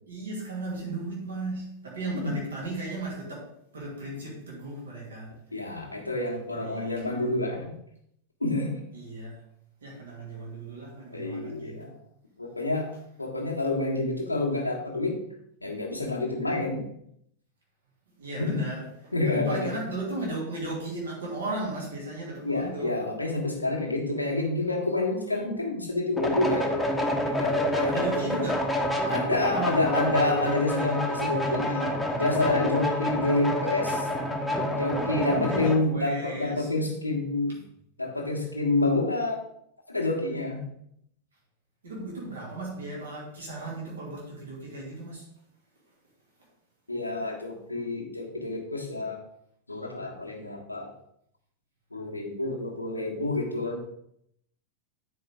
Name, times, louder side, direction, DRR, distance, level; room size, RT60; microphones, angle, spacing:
voice 1, 0.1-3.5 3.7-5.3 6.5-7.5 8.9-9.4 9.8-11.9 18.2-18.8 19.3-23.0 27.9-28.7 35.2-36.7 41.8-45.2, right 2 dB, 70° right, -4 dB, 2.7 m, -36 dB
voice 2, 5.5-7.7 8.4-8.8 11.1-11.9 12.4-12.9 13.2-15.2 15.6-16.9 18.4-18.7 19.1-19.9 22.4-26.9 27.2-28.2 29.0-34.1 34.7-37.6 38.0-39.4 39.9-40.7 46.9-49.2 49.7-50.9 51.9-53.8, left 2 dB, 85° left, -1 dB, 1.5 m, -28 dB
sound 1, 26.2-35.8, equal, 5° left, 1.1 m, -28 dB
9.1 x 5.0 x 3.7 m, 0.72 s
figure-of-eight pair, 90°, 0 cm